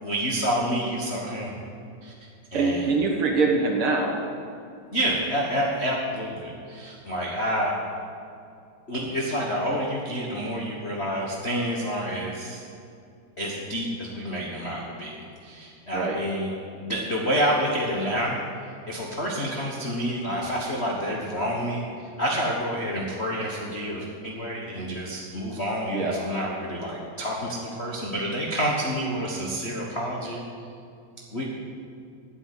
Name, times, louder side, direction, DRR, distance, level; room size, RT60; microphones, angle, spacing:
voice 1, 0.0-1.5 2.0-2.1 2.5-2.9 4.9-7.7 8.9-12.6 13.4-18.4 18.9-21.8 22.2-30.4 31.3-31.4, equal, 75° left, -2 dB, 0.6 m, -28 dB
voice 2, 2.5-4.2 15.9-16.2 25.9-26.2, right 3 dB, 60° right, 1 dB, 1.5 m, -23 dB
8.9 x 8.6 x 9.4 m, 2.5 s
omnidirectional pair, 3.4 m